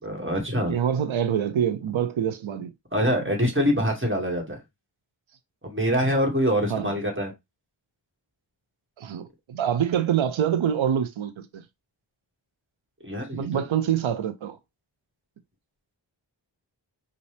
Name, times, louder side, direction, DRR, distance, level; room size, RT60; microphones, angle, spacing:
voice 1, 0.0-0.8 2.9-4.6 5.6-7.3 13.0-13.6, equal, 25° right, 2.0 m, -25 dB
voice 2, 0.7-2.7 6.7-7.0 9.0-11.6 13.3-14.6, right 9 dB, 90° right, 0.6 m, -26 dB
5.2 x 2.7 x 3.3 m
wide cardioid pair, 65°, 46 cm